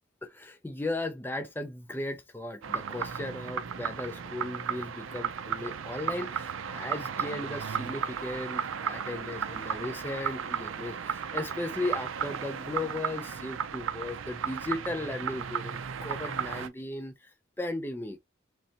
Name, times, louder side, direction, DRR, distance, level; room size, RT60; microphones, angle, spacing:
voice 1, 0.2-17.3 17.6-18.2, left 2 dB, 10° left, 0.3 m, -36 dB
sound 1, 2.6-16.7, right 7 dB, 80° right, 0.5 m, -35 dB
3.9 x 3.2 x 2.8 m
head